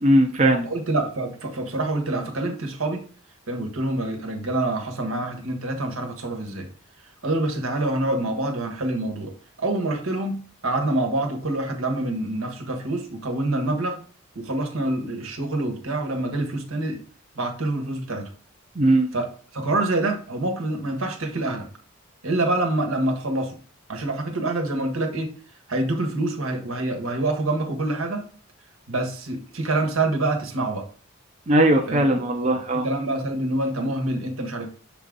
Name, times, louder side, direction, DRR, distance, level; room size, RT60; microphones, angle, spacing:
voice 1, 0.0-0.7 18.8-19.1 31.5-32.9, right 1 dB, 35° right, 2 dB, 0.6 m, -19 dB
voice 2, 0.6-3.0 3.5-6.7 7.2-9.3 9.6-14.0 14.3-17.0 17.3-18.3 19.1-19.3 19.5-21.7 22.2-23.5 23.9-25.3 25.7-28.2 28.9-30.9 31.9-32.0 32.4-34.7, right 2 dB, 80° right, 4 dB, 1.4 m, -26 dB
6.8 x 3.6 x 3.9 m, 0.41 s
head